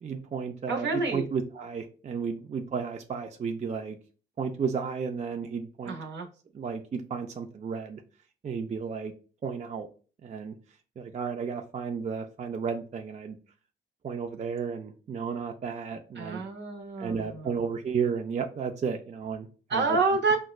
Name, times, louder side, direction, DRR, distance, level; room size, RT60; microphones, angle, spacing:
voice 1, 0.0-4.0 4.4-5.9 6.5-8.0 8.4-9.1 9.4-9.9 10.2-10.5 11.0-13.4 14.0-16.4 17.0-20.0, right 6 dB, 35° right, 0.4 m, -33 dB
voice 2, 0.7-1.3 5.9-6.3 16.2-17.5 19.7-20.4, right 4 dB, 60° right, 0.8 m, -28 dB
4.3 x 2.1 x 2.3 m
cardioid pair, 65°, 20 cm